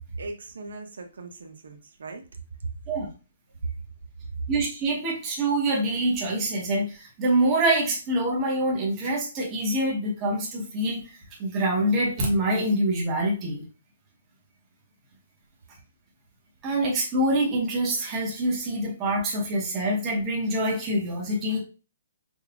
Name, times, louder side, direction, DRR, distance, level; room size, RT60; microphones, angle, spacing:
voice 1, 0.2-2.2, right 3 dB, 75° right, 5 dB, 0.7 m, -39 dB
voice 2, 4.5-11.0 11.4-13.6 16.6-21.6, right 1 dB, 15° right, -3 dB, 1.0 m, -25 dB
5.3 x 2.3 x 2.4 m, 0.33 s
hypercardioid pair, 180°, 0 cm